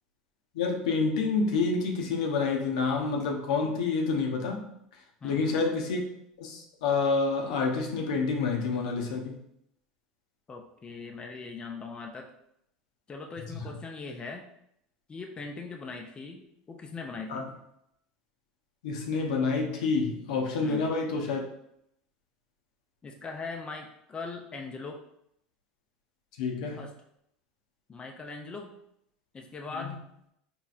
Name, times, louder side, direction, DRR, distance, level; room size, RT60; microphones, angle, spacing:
voice 1, 0.5-4.6 5.2-6.0 6.4-9.4 13.5-13.7 17.3-17.4 18.8-21.5 26.4-26.9 29.8-29.9, left 4 dB, 75° left, 1 dB, 0.7 m, -28 dB
voice 2, 5.2-5.6 10.5-12.3 13.1-14.5 15.1-17.5 20.6-20.9 23.0-25.0 26.8-26.9 27.9-28.7 29.3-30.1, left 4 dB, 25° left, 2 dB, 0.5 m, -40 dB
4.3 x 2.9 x 2.4 m, 0.76 s
hypercardioid pair, 85°, 4 cm